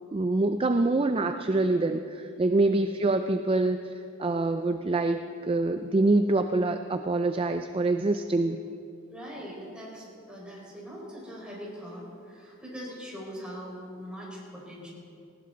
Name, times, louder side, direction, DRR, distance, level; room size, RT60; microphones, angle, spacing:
voice 1, 0.1-8.6, right 2 dB, 25° right, 7 dB, 0.5 m, -25 dB
voice 2, 2.6-2.9 9.1-14.9, equal, 5° right, -5 dB, 4.9 m, -41 dB
19.0 x 18.5 x 3.9 m, 2.5 s
head